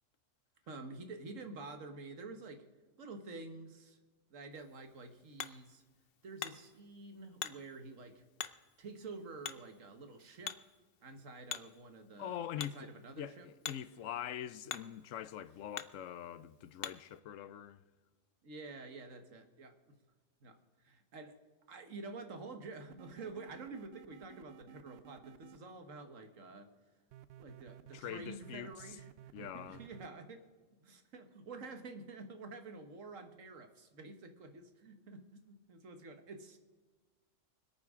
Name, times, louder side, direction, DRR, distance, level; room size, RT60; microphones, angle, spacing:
voice 1, 0.7-2.7 3.0-4.0 4.3-5.8 6.2-8.2 8.8-10.6 11.0-13.5 18.4-20.0 20.4-20.6 20.8-26.7 27.4-30.5 30.8-36.6, right 3 dB, 80° right, 1.7 m, -49 dB
Hammer, 4.5-17.2, left 9 dB, 55° left, 0.8 m, -48 dB
voice 2, 12.2-17.8 27.9-29.0 29.3-29.9, left 10 dB, 85° left, 1.0 m, -44 dB
sound 1, 22.9-25.6 27.1-30.1, right 11 dB, 65° right, 0.7 m, -55 dB
25.5 x 8.9 x 3.7 m
omnidirectional pair, 1.3 m